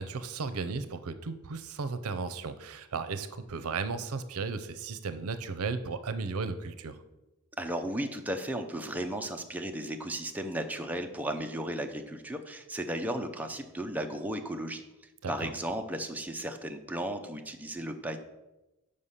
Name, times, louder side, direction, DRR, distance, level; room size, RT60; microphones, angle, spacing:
voice 1, 0.0-7.0 15.2-15.5, right 4 dB, 80° right, 11 dB, 0.6 m, -35 dB
voice 2, 7.6-14.8 15.3-18.2, right 1 dB, 5° right, 4 dB, 0.5 m, -35 dB
6.7 x 5.3 x 5.6 m, 1.0 s
head